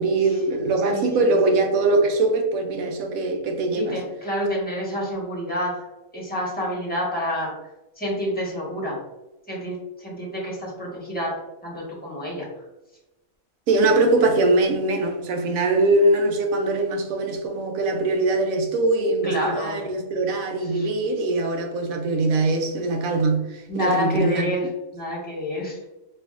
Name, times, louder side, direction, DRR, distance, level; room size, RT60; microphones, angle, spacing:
voice 1, 0.0-4.0 13.7-24.6, right 2 dB, 85° right, 4 dB, 1.1 m, -22 dB
voice 2, 0.9-1.6 3.8-7.5 8.0-9.0 9.5-12.5 19.2-19.8 20.6-20.9 23.7-25.8, equal, 10° left, -6 dB, 1.0 m, -28 dB
4.4 x 2.5 x 2.4 m, 0.99 s
omnidirectional pair, 1.4 m